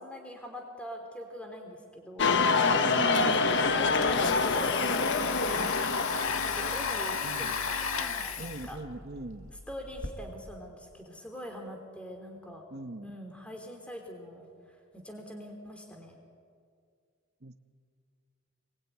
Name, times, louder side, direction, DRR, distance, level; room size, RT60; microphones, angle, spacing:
voice 1, 0.0-2.4 2.6-5.7 6.4-8.8 9.5-12.6 13.0-16.2, equal, 5° left, 2 dB, 3.2 m, -43 dB
sound 1, 2.2-7.1, left 4 dB, 55° left, 1.3 m, -26 dB
voice 2, 2.7-3.6 7.2-7.6 8.4-9.5 12.7-13.1 17.4-17.5, right 2 dB, 50° right, 6 dB, 1.1 m, -40 dB
Domestic sounds home sounds, 3.7-10.1, left 5 dB, 85° left, 1.8 m, -34 dB
27.5 x 21.0 x 9.3 m, 2.2 s
head